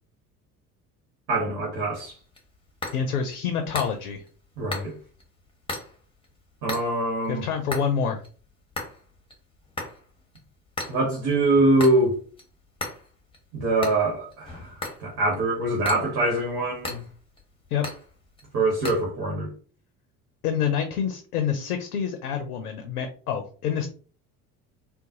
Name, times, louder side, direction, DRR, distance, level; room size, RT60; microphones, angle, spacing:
voice 1, 1.3-2.2 4.6-4.9 6.6-7.4 10.9-12.1 13.5-17.0 18.5-19.5, right 2 dB, 55° right, 1.2 m, -24 dB
sound 1, 1.9-19.0, left 2 dB, 10° left, 1.1 m, -39 dB
voice 2, 2.9-4.2 7.3-8.2 17.7-17.8 20.4-23.9, left 7 dB, 75° left, 0.6 m, -27 dB
3.8 x 2.2 x 2.6 m
figure-of-eight pair, 60°, 45 cm